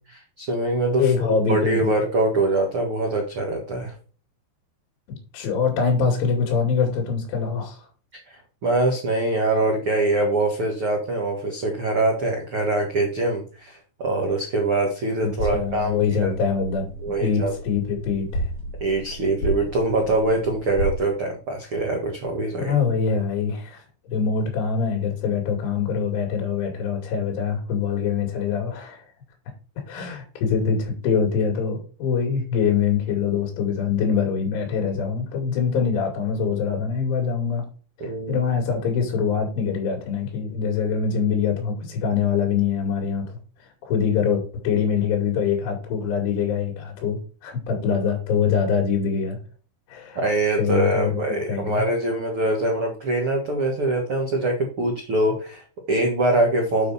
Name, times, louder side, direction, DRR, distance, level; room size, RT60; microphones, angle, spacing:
voice 1, 0.1-1.0 1.4-3.9 8.6-16.3 17.0-17.5 18.8-22.7 38.0-38.4 50.1-56.9, right 2 dB, 85° right, 1 dB, 1.2 m, -23 dB
voice 2, 1.0-1.9 5.3-7.9 15.2-16.9 17.2-18.5 22.6-29.0 29.9-37.6 38.0-43.4 43.8-49.4 49.9-50.2 50.6-51.9, left 6 dB, 85° left, 0 dB, 4.8 m, -24 dB
sound 1, 15.4-21.0, right 1 dB, 55° left, 4.5 m, -32 dB
9.1 x 5.3 x 4.2 m, 0.39 s
omnidirectional pair, 5.4 m